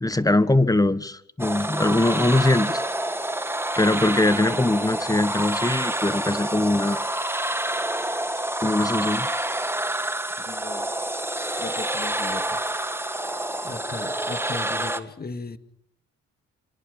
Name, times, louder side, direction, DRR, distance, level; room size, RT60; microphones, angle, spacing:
voice 1, 0.0-2.8 3.8-7.0 8.6-9.3, left 2 dB, 10° left, 1.5 m, -22 dB
sound 1, 1.4-15.0, right 1 dB, 10° right, 2.2 m, -28 dB
voice 2, 4.2-4.6 8.3-8.4 10.5-10.9 11.6-12.6 13.1-13.4 13.6-15.6, left 4 dB, 30° left, 2.4 m, -37 dB
27.0 x 27.0 x 5.5 m
cardioid pair, 70°, 29 cm